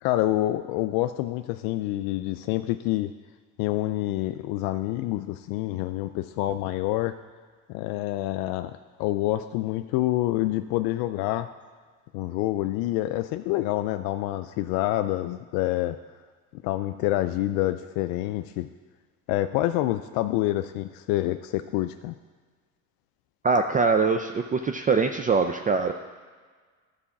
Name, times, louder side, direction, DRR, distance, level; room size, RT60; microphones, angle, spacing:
voice 1, 0.0-3.1 3.6-7.2 7.7-11.5 12.1-16.0 16.5-18.7 19.3-22.2, left 15 dB, 85° left, 9 dB, 0.5 m, -27 dB
voice 2, 23.4-25.9, right 4 dB, 25° right, 6 dB, 0.5 m, -23 dB
11.5 x 4.9 x 7.1 m, 1.5 s
cardioid pair, 100°, 35 cm